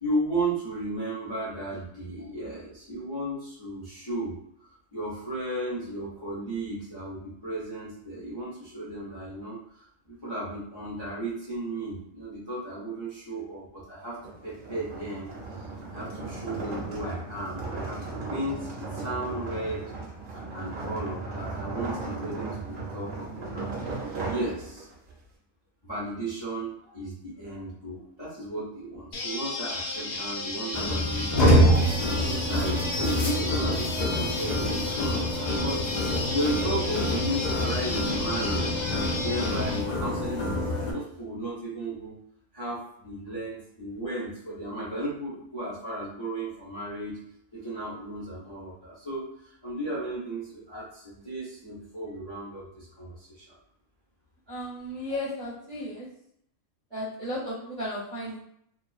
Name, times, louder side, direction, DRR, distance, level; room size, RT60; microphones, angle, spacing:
voice 1, 0.0-4.4 4.9-14.2 14.4-15.3 15.6-18.0 18.3-19.8 20.3-23.3 23.5-23.7 24.3-24.9 25.8-38.6 39.2-42.2 42.5-47.2 47.5-53.4, right 1 dB, 30° left, -9 dB, 0.7 m, -34 dB
sound 1, 14.2-25.1, right 3 dB, 50° right, 0.7 m, -36 dB
sound 2, 29.1-39.8, left 2 dB, 60° left, 0.8 m, -34 dB
sound 3, 30.7-40.9, left 1 dB, 75° left, 0.3 m, -26 dB
voice 2, 54.5-56.1 56.9-58.4, left 1 dB, 25° right, -9 dB, 0.8 m, -34 dB
2.4 x 2.2 x 2.4 m, 0.72 s
omnidirectional pair, 1.3 m